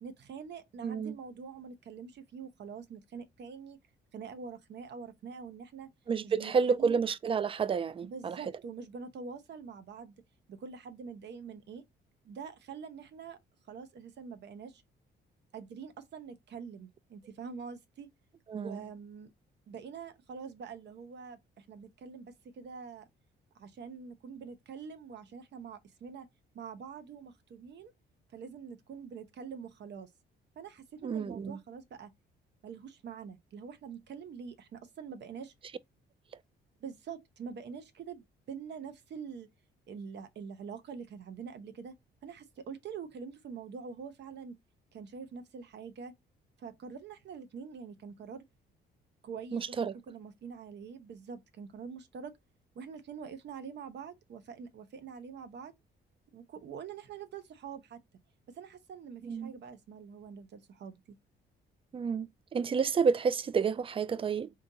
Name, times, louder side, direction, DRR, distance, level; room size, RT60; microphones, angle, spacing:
voice 1, 0.0-3.8 4.1-5.9 6.2-7.1 8.0-10.2 10.5-11.8 12.2-13.4 13.7-14.8 15.5-18.1 18.5-19.3 19.7-23.1 23.6-26.3 26.5-27.9 28.3-30.1 30.6-32.1 32.6-35.5 36.8-39.5 39.9-41.9 42.2-44.6 44.9-46.1 46.6-48.4 49.2-52.3 52.7-55.7 56.3-58.0 58.5-61.0, right 6 dB, 60° right, 0.8 m, -45 dB
voice 2, 0.8-1.1 6.1-8.4 18.5-18.8 31.0-31.6 49.5-49.9 59.2-59.5 61.9-64.5, right 6 dB, 25° right, 0.3 m, -30 dB
3.8 x 2.5 x 2.7 m
cardioid pair, 90°, 20 cm